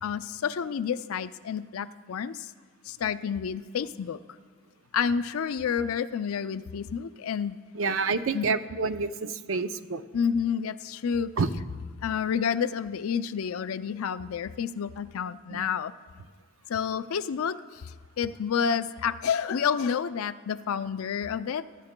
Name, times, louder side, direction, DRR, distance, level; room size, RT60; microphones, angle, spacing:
voice 1, 0.0-2.5 2.9-4.2 4.9-7.6 8.3-8.6 10.1-11.5 12.0-15.9 16.7-21.7, left 7 dB, 80° left, 13 dB, 0.4 m, -29 dB
voice 2, 7.7-10.0 11.4-11.5 15.5-15.7, right 4 dB, 70° right, 10 dB, 0.5 m, -28 dB
22.5 x 12.5 x 2.2 m, 1.5 s
head